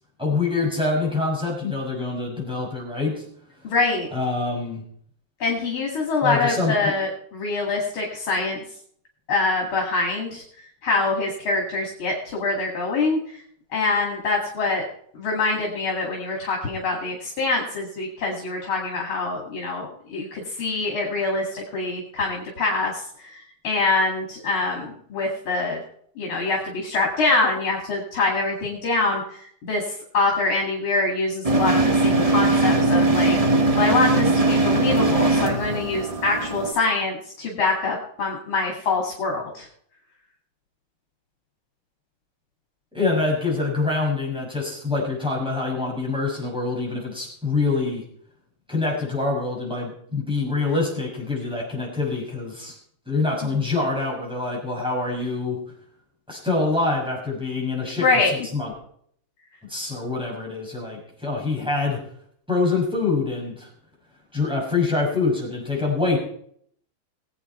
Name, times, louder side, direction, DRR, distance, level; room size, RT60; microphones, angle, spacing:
voice 1, 0.2-3.2 4.1-4.8 6.2-6.7 42.9-48.0 48.7-52.8 53.1-55.6 56.3-58.1 58.5-58.7 59.7-62.0 62.5-63.7 64.3-66.2, left 3 dB, ahead, -3 dB, 5.8 m, -25 dB
voice 2, 3.6-4.1 5.4-8.6 9.3-10.4 10.8-13.2 13.7-14.8 15.1-25.8 26.2-29.2 29.6-33.4 33.8-39.7 53.4-53.6 58.0-58.5, left 3 dB, 85° left, -1 dB, 3.2 m, -24 dB
sound 1, 31.4-36.7, right 2 dB, 25° right, 0.8 m, -20 dB
20.5 x 8.3 x 4.4 m, 0.64 s
omnidirectional pair, 2.2 m